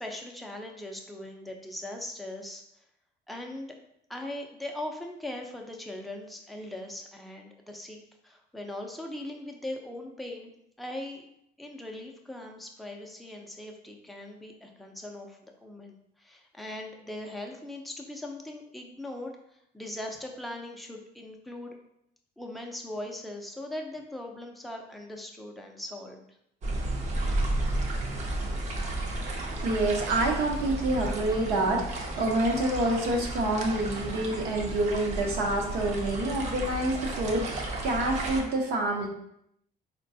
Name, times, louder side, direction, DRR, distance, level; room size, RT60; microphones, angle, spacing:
voice 1, 0.0-2.6 3.3-3.7 4.1-8.0 8.2-10.5 10.8-11.3 11.6-21.8 22.4-26.3, left 1 dB, ahead, 1 dB, 0.4 m, -40 dB
sound 1, 26.6-38.4, right 1 dB, 45° right, 0.6 m, -33 dB
voice 2, 29.5-39.1, right 2 dB, 70° right, 0 dB, 0.8 m, -27 dB
3.8 x 2.2 x 2.6 m, 0.76 s
cardioid pair, 110°, 17 cm